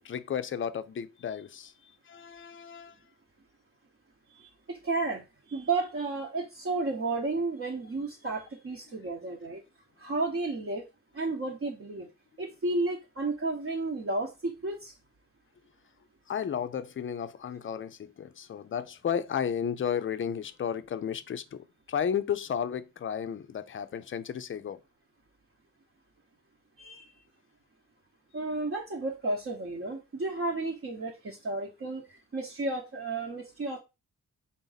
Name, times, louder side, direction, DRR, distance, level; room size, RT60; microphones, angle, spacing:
voice 1, 0.0-1.7 2.1-3.0 16.3-24.8, left 8 dB, 40° left, 0.4 m, -33 dB
voice 2, 4.3-9.6 10.0-10.8 11.1-12.1 12.4-15.0 26.8-27.1 28.3-33.8, right 3 dB, 45° right, 0.9 m, -32 dB
3.7 x 2.6 x 3.9 m
cardioid pair, 80°, 33 cm